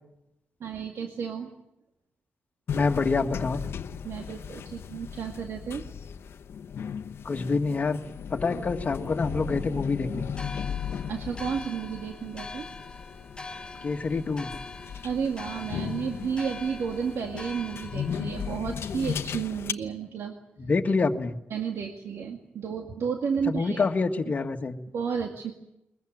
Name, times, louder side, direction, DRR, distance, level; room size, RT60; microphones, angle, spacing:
voice 1, 0.6-1.5 4.0-5.8 11.1-12.7 15.0-20.3 20.6-20.7 21.5-23.9 24.9-25.5, right 6 dB, 85° right, 3 dB, 2.2 m, -32 dB
sound 1, 2.7-19.7, left 7 dB, 70° left, 0.9 m, -36 dB
voice 2, 2.7-3.6 7.2-8.0 8.3-10.3 13.8-14.5 20.6-21.4 23.5-24.8, left 4 dB, 35° left, 4 dB, 1.8 m, -26 dB
sound 2, 10.3-18.5, left 3 dB, 20° left, 3.9 m, -43 dB
22.0 x 21.5 x 9.2 m, 0.87 s
wide cardioid pair, 155°, 4 cm